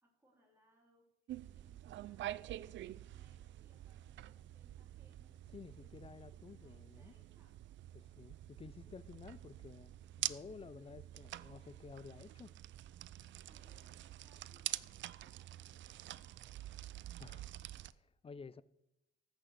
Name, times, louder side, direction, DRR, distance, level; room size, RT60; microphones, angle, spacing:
voice 1, 0.0-1.1 1.4-5.4 5.8-7.7 10.5-10.9 13.5-17.0, equal, 10° right, 3.9 m, -72 dB
sound 1, 1.3-17.9, right 13 dB, 70° right, 0.5 m, -47 dB
voice 2, 5.5-7.1 7.9-12.6 17.2-18.6, left 5 dB, 30° left, 0.6 m, -53 dB
14.5 x 6.5 x 6.7 m
cardioid pair, 90°, 20 cm